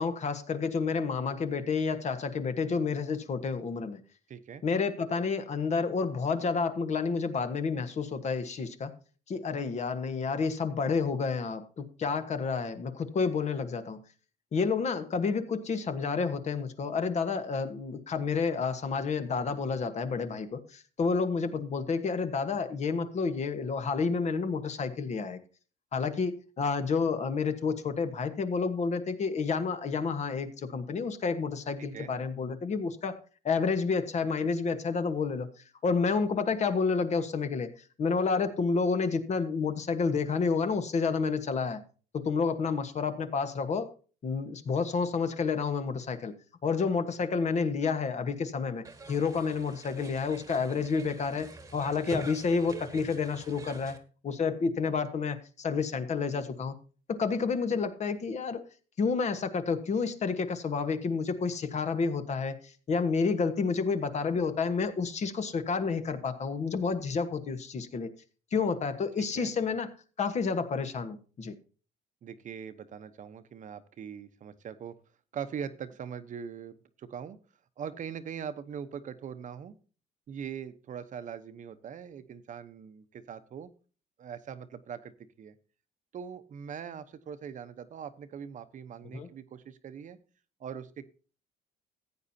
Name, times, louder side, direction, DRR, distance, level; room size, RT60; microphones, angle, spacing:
voice 1, 0.0-4.0 4.6-8.9 9.3-14.0 14.5-25.4 25.9-33.2 33.4-35.5 35.8-37.7 38.0-41.8 42.1-43.9 44.2-46.3 46.6-54.0 54.2-56.7 57.1-58.6 59.0-62.6 62.9-68.1 68.5-69.9 70.2-71.5 89.1-89.3, left 5 dB, 40° left, 9 dB, 1.4 m, -30 dB
voice 2, 4.3-4.6 31.8-32.1 69.2-69.5 72.2-75.0 75.3-77.4 77.8-79.7 80.3-83.7 84.2-85.1 85.4-85.5 86.1-90.2 90.6-91.0, right 7 dB, 50° right, 11 dB, 1.0 m, -41 dB
sound 1, 48.9-54.0, right 3 dB, 20° right, 1.4 m, -45 dB
15.0 x 8.9 x 2.8 m, 0.37 s
cardioid pair, 110°, 17 cm